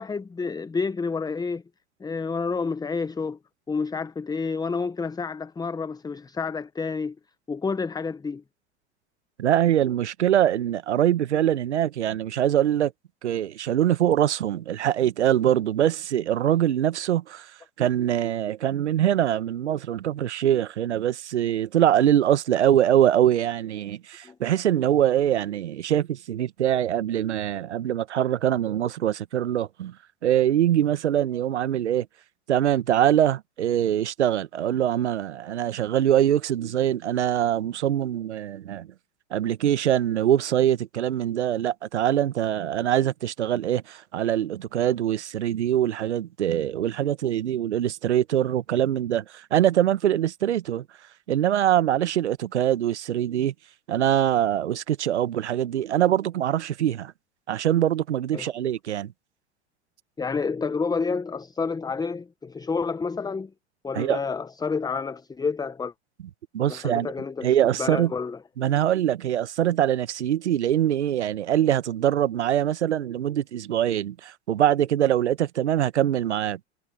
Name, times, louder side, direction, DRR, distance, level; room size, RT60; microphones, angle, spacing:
voice 1, 0.0-1.6 2.0-3.4 3.7-7.2 7.5-8.4 24.2-24.4 58.3-58.5 60.2-63.5 63.8-65.9 66.7-67.5 67.8-68.4, left 4 dB, 10° left, 0.9 m, -29 dB
voice 2, 9.4-12.9 13.2-17.5 17.8-29.9 30.2-32.1 32.5-38.9 39.3-50.8 51.3-53.5 53.9-57.1 57.5-59.1 63.9-64.2 66.5-67.1 67.4-68.1 68.6-76.6, right 11 dB, 85° right, 1.4 m, -23 dB
hypercardioid pair, 90°, 33 cm